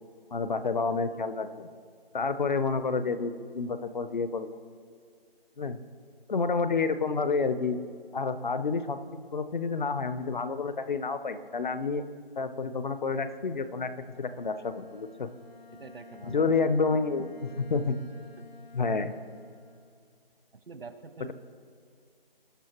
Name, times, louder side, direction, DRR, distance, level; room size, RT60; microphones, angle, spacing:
voice 1, 0.3-1.7 2.1-4.6 5.6-5.8 6.3-7.8 8.1-9.0 9.3-12.0 12.4-13.9 14.2-15.3 16.3-18.0 18.7-19.1, left 4 dB, 50° left, 11 dB, 0.7 m, -29 dB
Bowed string instrument, 13.9-20.0, left 4 dB, 80° left, 2.3 m, -52 dB
voice 2, 15.7-16.5 18.4-18.5 20.5-21.3, right 4 dB, 80° right, 10 dB, 1.1 m, -45 dB
20.5 x 8.8 x 3.0 m, 2.1 s
figure-of-eight pair, 160°, 30 cm